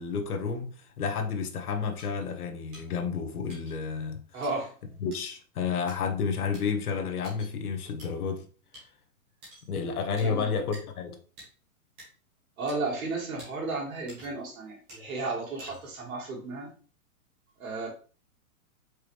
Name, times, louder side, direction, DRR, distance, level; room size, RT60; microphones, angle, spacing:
voice 1, 0.0-4.4 5.0-8.5 9.7-11.2, left 5 dB, 85° left, 1.0 m, -31 dB
sound 1, 2.0-2.1 2.7-2.8 3.5-3.7 4.4-4.5 5.1-5.2 5.9-6.0 6.5-6.6 7.2-7.5 8.0-8.1 8.7-8.8 9.4-9.7 10.2-10.3 10.7-10.8 11.4-11.5 12.0-12.1 12.7-12.8 13.4-13.5 14.1-14.5 14.9-15.0 15.6-16.0, equal, 10° right, 0.5 m, -48 dB
voice 2, 4.3-4.7 10.2-10.5 12.6-16.7 17.6-17.9, right 3 dB, 65° right, 2.2 m, -33 dB
4.7 x 3.3 x 3.1 m
hypercardioid pair, 165°, 44 cm